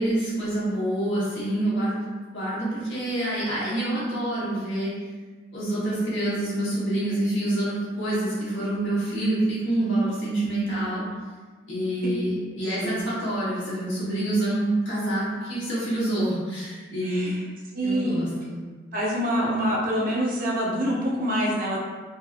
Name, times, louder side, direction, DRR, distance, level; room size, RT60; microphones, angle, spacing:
voice 1, 0.0-2.0 2.3-4.9 5.5-11.0 11.7-17.3 17.8-18.5, right 1 dB, 90° left, -9 dB, 1.3 m, -26 dB
voice 2, 17.0-17.4 17.7-18.2 18.9-21.8, equal, 50° right, -4 dB, 0.6 m, -26 dB
4.2 x 2.1 x 2.3 m, 1.3 s
head